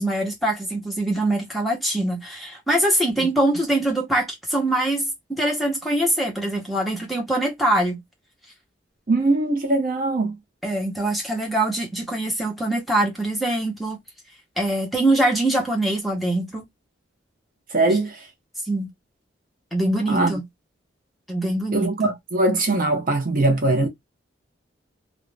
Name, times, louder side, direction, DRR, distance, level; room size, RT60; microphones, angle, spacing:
voice 1, 0.0-8.0 10.6-14.0 14.6-16.6 18.6-18.9 19.7-20.4 21.3-22.1, right 1 dB, ahead, 0.8 m, -23 dB
voice 2, 9.1-10.4 17.7-18.3 20.1-20.4 21.7-23.9, right 2 dB, 45° right, 0.5 m, -21 dB
2.4 x 2.0 x 3.1 m
head